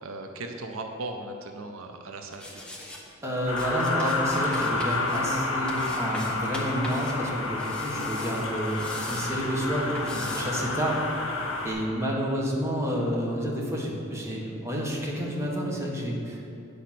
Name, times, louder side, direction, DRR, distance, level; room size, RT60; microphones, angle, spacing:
voice 1, 0.0-2.8, right 2 dB, 80° right, 4 dB, 0.7 m, -38 dB
sound 1, 2.3-3.0 3.6-5.2 5.7-7.1 7.4-9.3 10.0-10.4, left 1 dB, 5° left, 0.9 m, -40 dB
voice 2, 3.2-11.0 11.6-16.4, equal, 15° right, -3 dB, 1.2 m, -29 dB
sound 2, 3.5-11.7, left 3 dB, 65° left, 1.3 m, -30 dB
8.5 x 5.2 x 5.9 m, 2.8 s
head